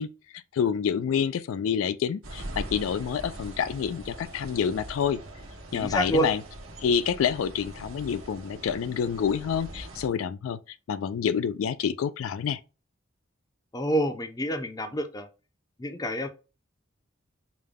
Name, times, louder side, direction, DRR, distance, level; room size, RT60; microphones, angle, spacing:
voice 1, 0.0-5.2 5.7-6.4 6.8-10.6 10.9-12.6, left 7 dB, 80° left, 0.3 m, -28 dB
sound 1, 2.2-10.1, right 1 dB, 80° right, 1.1 m, -42 dB
voice 2, 5.7-6.3 13.7-15.3 15.8-16.3, right 1 dB, 20° left, 0.5 m, -27 dB
5.1 x 2.2 x 3.5 m
head